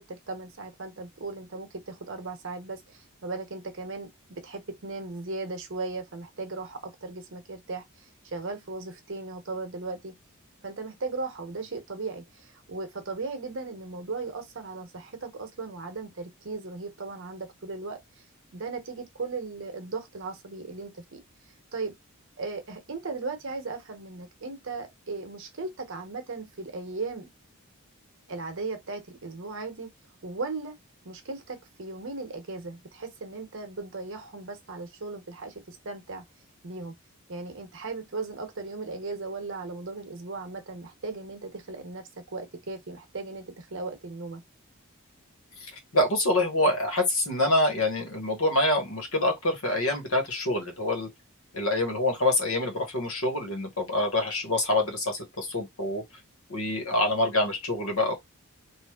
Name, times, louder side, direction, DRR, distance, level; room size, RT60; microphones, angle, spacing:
voice 1, 0.0-10.2 10.6-18.2 18.5-21.2 21.7-21.9 22.4-27.3 28.3-29.9 30.2-30.8 31.0-36.2 36.6-36.9 37.3-44.4, right 3 dB, 60° right, 0.9 m, -37 dB
voice 2, 45.6-51.1 51.5-56.0 56.5-58.1, left 1 dB, 65° left, 1.4 m, -26 dB
3.3 x 2.6 x 2.3 m
head